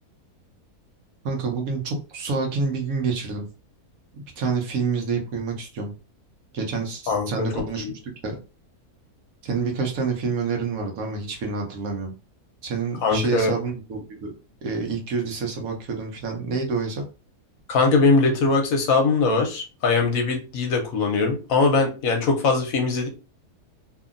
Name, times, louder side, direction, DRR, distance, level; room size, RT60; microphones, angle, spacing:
voice 1, 1.2-3.5 4.1-5.9 6.5-8.4 9.4-12.1 12.6-14.3 14.6-17.0, right 4 dB, 65° right, 2 dB, 1.1 m, -28 dB
voice 2, 7.1-7.6 13.0-13.5 17.7-23.1, left 3 dB, 70° left, 3 dB, 1.0 m, -21 dB
2.8 x 2.6 x 2.4 m, 0.31 s
omnidirectional pair, 1.7 m